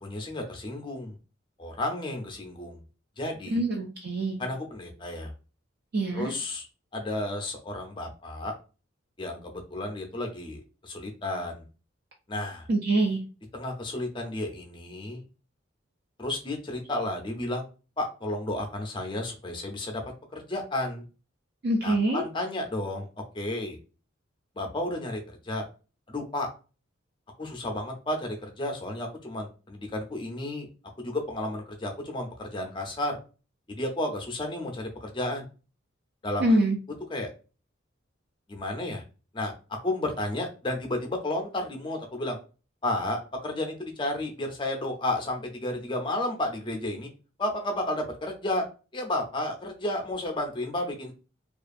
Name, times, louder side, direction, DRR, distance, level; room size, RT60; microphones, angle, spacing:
voice 1, 0.0-1.1 1.6-2.8 3.2-3.6 4.4-5.3 6.1-6.7 6.9-8.5 9.2-11.6 12.3-12.7 13.5-15.2 16.2-17.7 18.0-20.0 20.3-21.0 21.8-23.1 23.3-23.8 24.6-25.2 25.4-25.6 26.1-26.5 27.4-30.7 31.0-33.2 33.7-35.5 36.2-36.6 37.1-37.3 38.5-39.0 39.3-39.5 39.8-42.4 42.8-47.1 47.4-48.6 48.9-51.1, left 1 dB, 25° left, 3 dB, 0.5 m, -32 dB
voice 2, 3.5-4.4 5.9-6.3 12.7-13.2 21.6-22.2 36.4-36.8, right 1 dB, 55° right, 1 dB, 0.4 m, -25 dB
2.4 x 2.4 x 2.5 m, 0.33 s
head